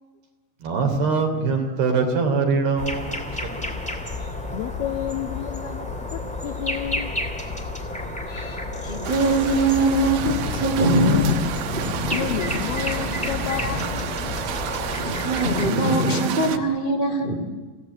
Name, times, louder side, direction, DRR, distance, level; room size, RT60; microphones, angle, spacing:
voice 1, 0.6-3.2, right 4 dB, 55° right, 4 dB, 4.9 m, -22 dB
sound 1, 2.8-15.7, left 2 dB, 5° left, 1.3 m, -31 dB
voice 2, 4.2-7.2 8.3-8.7 10.4-10.6 12.1-14.4 15.4-15.6, left 12 dB, 85° left, 8 dB, 2.2 m, -32 dB
voice 3, 8.8-13.9 14.2-14.5 14.9-17.4, right 1 dB, 30° right, 2 dB, 0.9 m, -23 dB
sound 2, 9.0-16.6, right 10 dB, 80° right, 2.1 m, -31 dB
28.0 x 17.0 x 8.4 m, 1.4 s
omnidirectional pair, 5.8 m